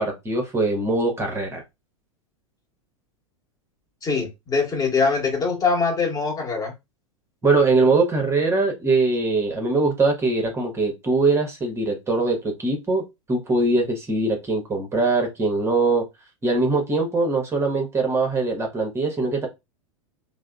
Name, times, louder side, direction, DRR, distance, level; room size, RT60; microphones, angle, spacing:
voice 1, 0.0-1.6 7.4-13.0 13.3-16.0 16.4-19.5, right 3 dB, 15° right, 0.9 m, -22 dB
voice 2, 4.0-6.7, left 4 dB, 20° left, 1.3 m, -23 dB
3.3 x 2.0 x 2.3 m
figure-of-eight pair, 95°, 18 cm